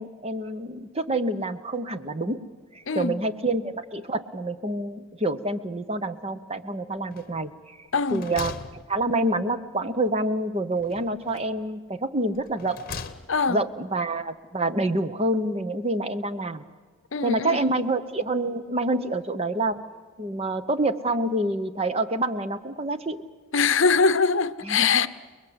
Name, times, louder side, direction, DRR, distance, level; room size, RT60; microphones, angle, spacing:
voice 1, 0.0-2.4 2.7-7.8 8.1-12.8 13.5-16.6 17.2-19.8 20.2-23.2 24.6-25.1, right 2 dB, 30° right, 0.8 m, -27 dB
voice 2, 2.9-3.2 7.9-8.3 13.3-13.6 17.1-17.8 23.5-25.1, left 5 dB, 60° left, 0.7 m, -23 dB
sound 1, 7.1-7.6 7.9-9.5 10.8-11.7 12.3-13.6, left 5 dB, 40° left, 1.0 m, -40 dB
29.5 x 21.0 x 8.1 m
head